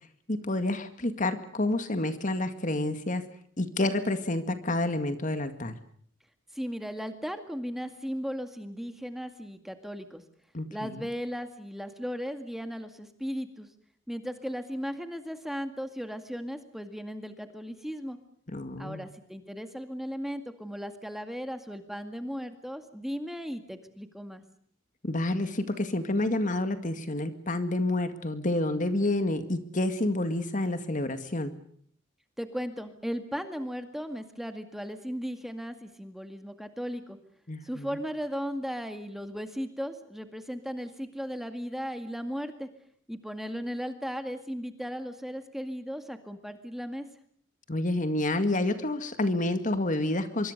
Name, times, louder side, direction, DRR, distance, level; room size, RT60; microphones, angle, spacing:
voice 1, 0.3-3.3 3.6-5.7 10.5-11.1 18.5-19.1 25.0-31.5 37.5-38.0 47.7-50.5, left 2 dB, 40° left, 9 dB, 2.0 m, -29 dB
voice 2, 6.5-10.2 10.7-13.7 14.1-18.2 18.8-24.4 32.4-37.2 37.6-42.7 43.1-47.1, equal, ahead, 7 dB, 2.0 m, -36 dB
25.5 x 24.0 x 6.6 m, 0.63 s
head